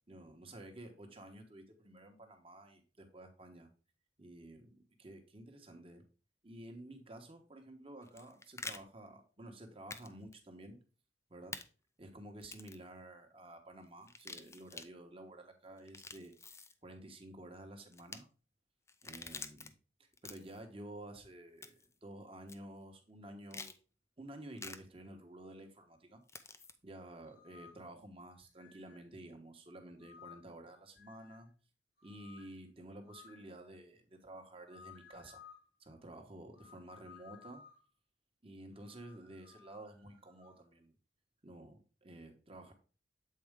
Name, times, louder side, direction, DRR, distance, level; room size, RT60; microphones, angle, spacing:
voice 1, 0.1-3.7 4.2-6.0 6.4-10.8 11.3-11.6 12.0-18.3 19.0-19.7 20.0-23.7 24.2-26.2 26.8-31.5 32.0-35.4 35.8-37.6 38.4-40.9 41.4-42.7, right 1 dB, 30° right, 5 dB, 1.1 m, -52 dB
sound 1, 8.0-8.8 9.9-10.1 10.3-10.4 11.5-11.6 12.4-12.8 14.0-14.9 15.8-16.7 17.9-18.2 18.9-19.7 20.1-20.6 21.6-21.9 22.5-22.6 23.5-23.8 24.6-24.8 26.3-26.7, left 4 dB, 15° left, 0.4 m, -47 dB
sound 2, 27.3-27.9 28.6-29.1 30.0-30.6 30.9-31.5 32.0-32.6 33.1-33.5 34.7-35.7 36.6-37.9 38.8-40.6, left 7 dB, 70° left, 1.5 m, -58 dB
7.7 x 4.3 x 3.5 m, 0.36 s
head